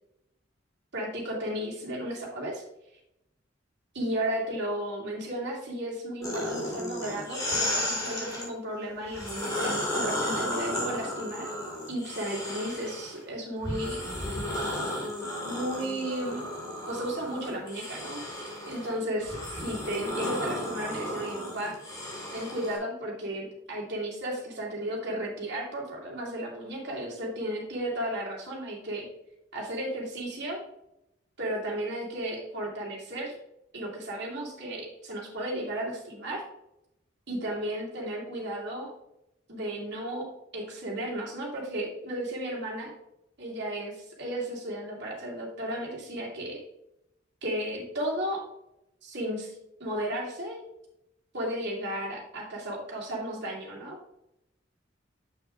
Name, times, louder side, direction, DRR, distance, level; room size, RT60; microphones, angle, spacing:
voice 1, 0.9-2.6 3.9-11.5 11.9-14.0 15.4-16.4 16.9-18.2 18.7-21.8 22.3-29.1 29.5-30.6 31.4-33.4 33.7-36.4 37.3-38.9 39.5-40.3 40.5-42.9 43.4-46.6 47.4-48.4 49.0-50.6 51.3-54.0, right 1 dB, 60° right, -3 dB, 2.5 m, -34 dB
sound 1, 6.2-8.5 9.1-13.2 13.6-22.8, left 1 dB, 20° left, 2.2 m, -34 dB
7.7 x 6.8 x 2.5 m, 0.85 s
head